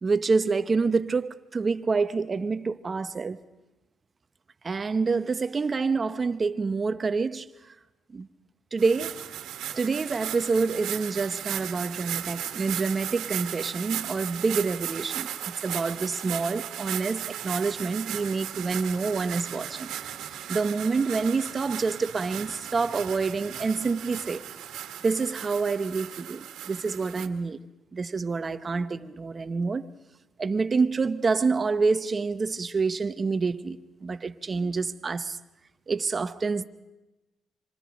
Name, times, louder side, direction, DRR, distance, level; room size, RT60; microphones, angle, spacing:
voice 1, 0.0-3.4 4.6-7.5 8.1-8.3 8.7-9.2 9.7-15.3 15.6-19.9 20.5-24.4 25.0-27.6 27.9-29.9 30.4-35.4 35.9-36.6, right 4 dB, 35° right, 1.0 m, -27 dB
sound 1, 8.8-27.3, right 10 dB, 80° right, 1.8 m, -36 dB
26.5 x 26.0 x 5.3 m
cardioid pair, 90°, 0 cm